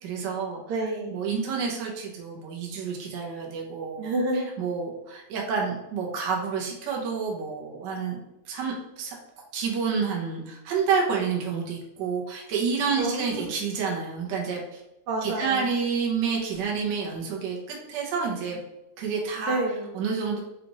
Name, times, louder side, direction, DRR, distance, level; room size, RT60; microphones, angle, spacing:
voice 1, 0.0-0.6 1.1-4.0 4.6-8.2 8.5-9.2 9.5-14.8 15.2-18.6 19.0-19.6 19.9-20.4, right 5 dB, 65° right, -1 dB, 1.3 m, -29 dB
voice 2, 0.7-1.2 4.0-4.5 13.0-13.6 15.1-15.6 19.3-19.9, right 2 dB, 80° right, 0 dB, 1.6 m, -29 dB
5.1 x 2.4 x 3.0 m, 0.91 s
omnidirectional pair, 2.4 m